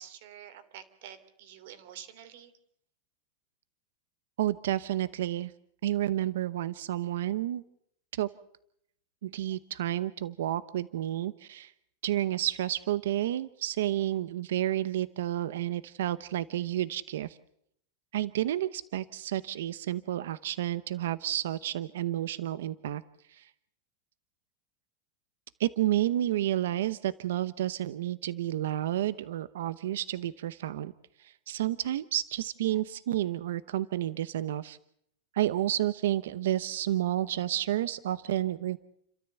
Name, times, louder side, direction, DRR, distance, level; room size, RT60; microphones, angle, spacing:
voice 1, 0.0-2.5, right 9 dB, 65° right, 11 dB, 3.1 m, -48 dB
voice 2, 4.4-5.5 5.8-7.6 8.1-8.3 9.2-11.7 12.0-17.4 18.1-23.0 23.3-23.5 25.6-30.9 31.2-34.8 35.3-38.8, right 13 dB, 85° right, 15 dB, 0.8 m, -30 dB
30.0 x 13.5 x 8.2 m, 0.71 s
supercardioid pair, 150°, 0 cm